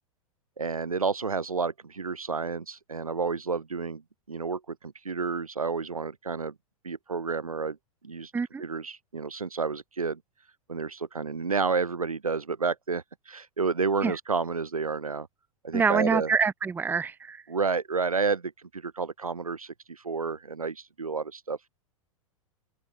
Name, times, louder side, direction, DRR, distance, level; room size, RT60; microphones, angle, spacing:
voice 1, 0.6-4.0 4.3-6.5 6.8-7.8 8.0-8.3 8.6-10.2 10.7-15.3 15.6-16.3 17.5-21.6, right 4 dB, 80° right, 3.5 m, -30 dB
voice 2, 15.7-17.4, right 5 dB, 10° right, 0.8 m, -26 dB
figure-of-eight pair, 95°, 18 cm